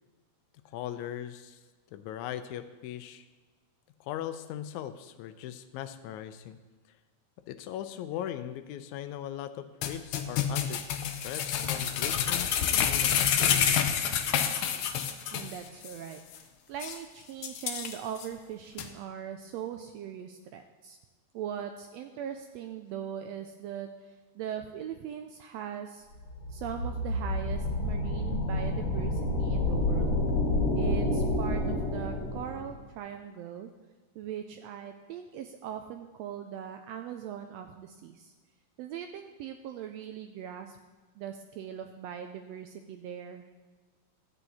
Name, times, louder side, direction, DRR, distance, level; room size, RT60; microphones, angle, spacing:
voice 1, 0.7-1.6 1.9-3.2 4.0-6.6 7.5-10.8 11.2-14.0, left 11 dB, 90° left, 10 dB, 2.0 m, -39 dB
sound 1, 9.8-15.6 15.8-15.9 16.3-16.4 16.8-17.0 17.4-18.3 18.8-18.9, left 8 dB, 75° left, 1.4 m, -28 dB
voice 2, 15.3-21.0 21.3-26.1 26.5-30.2 30.7-33.7 34.1-38.3 38.8-40.8 41.2-43.4, right 9 dB, 80° right, 6 dB, 1.6 m, -40 dB
sound 2, 26.2-32.7, left 1 dB, 55° left, 2.5 m, -29 dB
12.5 x 8.1 x 4.2 m, 1.4 s
omnidirectional pair, 3.3 m